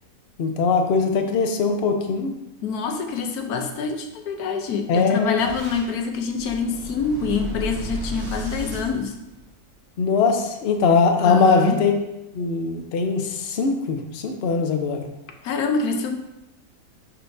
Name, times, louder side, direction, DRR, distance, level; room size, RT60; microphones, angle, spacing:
voice 1, 0.4-2.3 4.9-5.4 10.0-11.9 12.3-15.1, left 4 dB, 50° left, 4 dB, 0.9 m, -21 dB
voice 2, 2.6-9.2 11.2-11.8 15.4-16.2, left 5 dB, 85° left, 5 dB, 1.2 m, -26 dB
Boom, 5.4-9.8, right 1 dB, 85° right, 1.6 m, -34 dB
10.5 x 4.4 x 2.6 m, 0.91 s
omnidirectional pair, 1.6 m